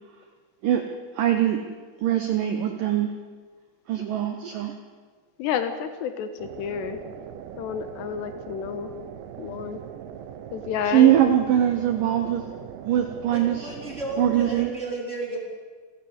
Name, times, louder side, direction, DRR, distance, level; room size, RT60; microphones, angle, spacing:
voice 1, 1.2-1.6 2.0-3.1 3.9-4.7 10.9-12.4 12.9-13.7 14.2-14.7, right 11 dB, 70° right, 6 dB, 2.1 m, -22 dB
voice 2, 5.4-7.0 7.6-8.9 9.4-9.8 10.5-11.2, left 8 dB, 75° left, 9 dB, 3.1 m, -30 dB
sound 1, 6.4-14.7, right 9 dB, 90° right, 3.4 m, -40 dB
voice 3, 13.3-15.4, right 3 dB, 20° right, -1 dB, 3.2 m, -32 dB
29.0 x 11.5 x 8.1 m, 1.5 s
omnidirectional pair, 5.2 m